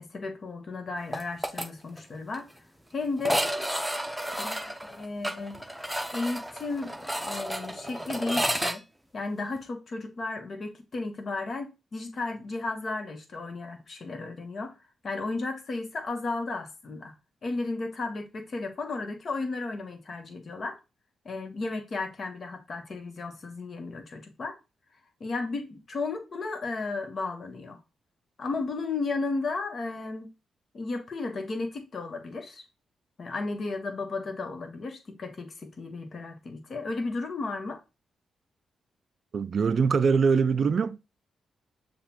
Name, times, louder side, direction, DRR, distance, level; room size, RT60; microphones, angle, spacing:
voice 1, 0.0-2.5 2.9-3.7 4.4-5.7 6.1-8.9 9.1-14.8 15.0-17.1 17.4-20.8 21.2-24.6 25.2-27.8 28.4-30.3 30.7-32.6 33.2-37.8, left 3 dB, 55° left, 1.1 m, -34 dB
sound 1, 1.1-1.7 2.0-2.1 2.3-2.4 3.2-8.8, equal, 5° right, 0.8 m, -31 dB
voice 2, 39.3-41.0, right 5 dB, 60° right, 0.3 m, -23 dB
6.7 x 2.4 x 2.9 m
supercardioid pair, 50°, 0 cm